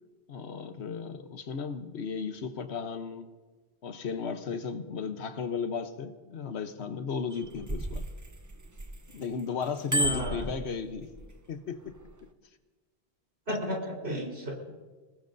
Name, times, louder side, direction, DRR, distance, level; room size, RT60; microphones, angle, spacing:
voice 1, 0.3-3.3 3.8-8.0 9.1-11.1 11.5-11.9 13.5-13.6, left 5 dB, 80° left, 9 dB, 1.2 m, -35 dB
Bicycle bell, 7.3-9.2 9.6-11.3 11.9-12.1, equal, 20° right, 0.6 m, -32 dB
voice 2, 10.0-10.4 13.5-14.7, equal, 70° right, -1 dB, 4.5 m, -33 dB
25.0 x 20.0 x 2.7 m, 1.3 s
omnidirectional pair, 1.1 m